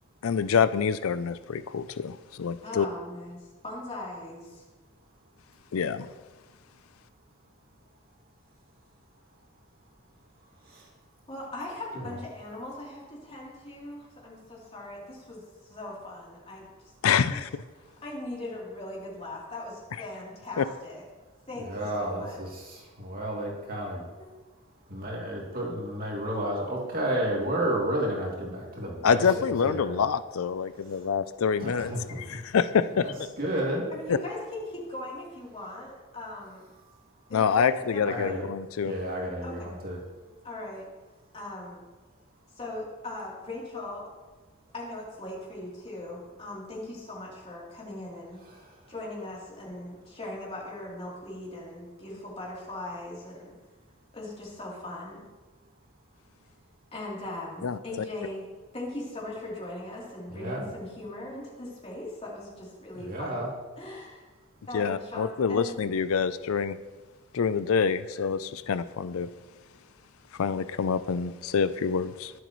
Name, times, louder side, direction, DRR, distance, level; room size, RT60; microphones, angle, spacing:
voice 1, 0.2-2.9 5.7-6.1 17.0-17.5 20.6-20.7 29.0-33.1 34.1-34.2 37.3-38.9 57.6-57.8 64.7-66.8 67.3-69.3 70.4-72.3, left 6 dB, 80° left, 13 dB, 0.4 m, -26 dB
voice 2, 2.6-3.4 3.6-4.6 11.3-15.4 15.7-16.9 17.3-17.4 18.0-21.0 21.5-22.4 24.2-24.3 33.9-36.7 37.3-38.5 39.4-39.8 40.4-40.8 41.3-41.8 42.5-44.1 44.7-48.4 48.9-53.5 54.1-55.2 56.9-58.5 58.7-63.4 63.8-64.2 64.7-65.8, left 1 dB, 30° left, -4 dB, 3.3 m, -39 dB
voice 3, 21.6-22.5 23.0-24.0 24.9-30.0 31.6-32.0 33.0-33.8 38.1-38.4 38.8-40.0 60.3-60.7 62.9-63.5, right 1 dB, 45° right, -3 dB, 2.7 m, -31 dB
21.0 x 7.9 x 3.1 m, 1.3 s
head